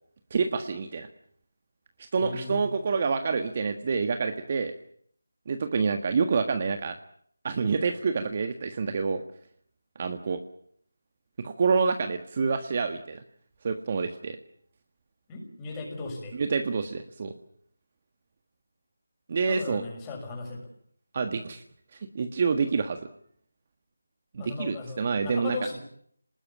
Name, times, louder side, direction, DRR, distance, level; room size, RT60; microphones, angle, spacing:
voice 1, 0.3-1.1 2.1-4.7 5.5-6.9 7.4-9.2 10.0-10.4 11.4-13.2 13.6-14.4 16.3-17.3 19.3-19.8 21.1-21.6 22.1-23.0 24.3-25.6, right 5 dB, 30° right, 7 dB, 1.5 m, -27 dB
voice 2, 2.2-2.7 15.3-16.4 19.5-20.7 24.4-25.8, left 3 dB, 15° left, 0 dB, 6.4 m, -37 dB
26.5 x 20.0 x 8.7 m, 0.65 s
figure-of-eight pair, 170°, 0 cm